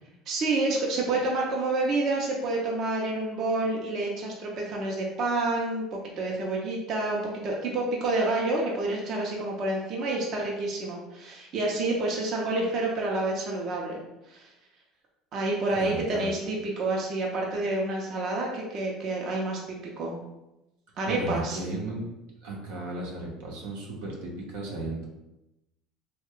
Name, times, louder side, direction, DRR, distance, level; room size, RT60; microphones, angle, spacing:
voice 1, 0.3-14.5 15.3-20.1 21.0-21.6, right 2 dB, 50° right, -2 dB, 0.7 m, -28 dB
voice 2, 15.7-16.3 21.1-22.0 22.4-25.1, right 2 dB, 85° right, -3 dB, 0.9 m, -35 dB
3.2 x 2.3 x 3.6 m, 0.93 s
supercardioid pair, 105°, 0 cm